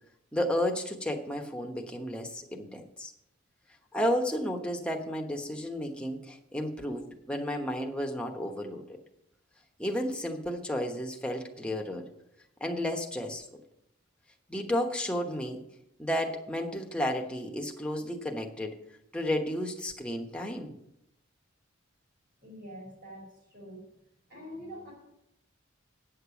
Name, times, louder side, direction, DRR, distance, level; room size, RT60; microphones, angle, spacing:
voice 1, 0.3-3.1 3.9-9.0 9.8-12.1 12.6-13.4 14.5-15.6 16.0-18.7 19.1-20.7, left 1 dB, 5° left, 2 dB, 1.1 m, -32 dB
voice 2, 22.4-23.9 24.3-24.9, equal, 45° right, -7 dB, 4.2 m, -45 dB
9.3 x 6.7 x 7.1 m, 0.82 s
head